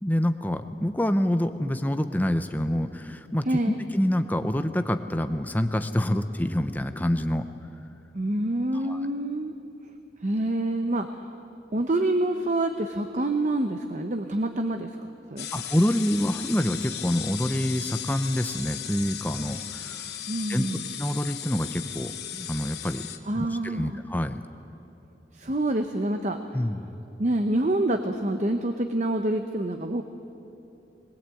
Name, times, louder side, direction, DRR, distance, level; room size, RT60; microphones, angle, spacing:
voice 1, 0.0-7.5 8.8-9.0 15.5-20.0 20.5-20.7 21.0-23.0 23.3-24.4 26.5-26.9, left 1 dB, 10° left, 8 dB, 0.7 m, -27 dB
voice 2, 3.5-3.9 8.1-9.5 10.2-11.2 11.7-15.5 20.3-20.9 23.3-24.0 25.3-26.4 27.2-30.0, right 1 dB, 40° right, 6 dB, 0.8 m, -27 dB
sound 1, 15.4-23.2, left 10 dB, 65° left, 1.2 m, -36 dB
21.5 x 20.0 x 8.4 m, 2.8 s
head